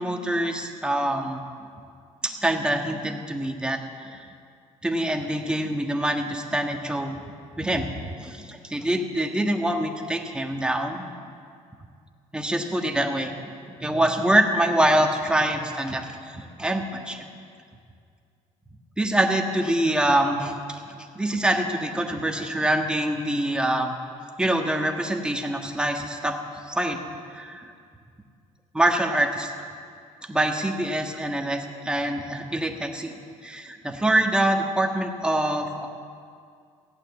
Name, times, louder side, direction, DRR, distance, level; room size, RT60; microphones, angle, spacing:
voice 1, 0.0-1.4 2.2-4.2 4.8-7.2 7.6-11.0 12.3-13.3 13.8-16.0 16.6-17.3 19.0-20.5 21.1-23.9 24.4-26.4 26.7-27.0 27.3-27.7 28.7-29.5 30.3-33.1 33.4-35.9, right 1 dB, 5° right, 3 dB, 1.6 m, -25 dB
15.5 x 8.8 x 7.3 m, 2.3 s
supercardioid pair, 85°, 16 cm